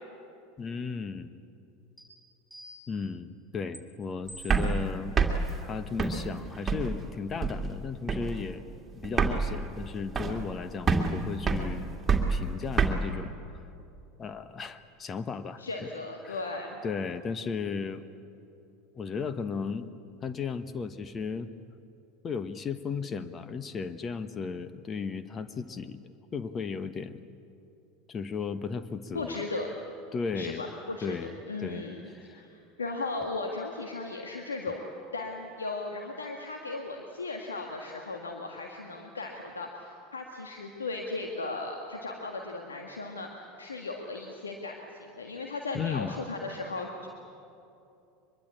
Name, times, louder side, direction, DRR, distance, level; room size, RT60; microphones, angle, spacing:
voice 1, 0.6-1.3 2.9-5.2 5.6-8.6 8.9-13.6 14.2-15.6 16.2-16.5 16.8-18.0 18.9-19.9 20.2-21.5 22.2-26.0 26.3-27.3 28.1-29.4 30.1-30.6 31.0-31.4 31.6-31.9 32.1-32.4 45.7-46.2, left 5 dB, 30° left, 12 dB, 1.2 m, -35 dB
sound 1, 2.0-2.1 2.5-3.1 3.7-3.8 4.3-4.8 5.5-5.6 6.0-6.2, right 1 dB, 5° right, 6.8 m, -48 dB
sound 2, 4.4-7.1 7.4-7.8 8.1-8.5 8.7-8.8 9.0-10.6 10.9-12.9, right 5 dB, 20° right, 2.3 m, -27 dB
voice 2, 15.6-16.8 29.1-29.7 30.3-34.8 35.1-47.1, left 3 dB, 85° left, 2 dB, 1.6 m, -37 dB
23.5 x 22.0 x 8.6 m, 2.7 s
hypercardioid pair, 80°, 0 cm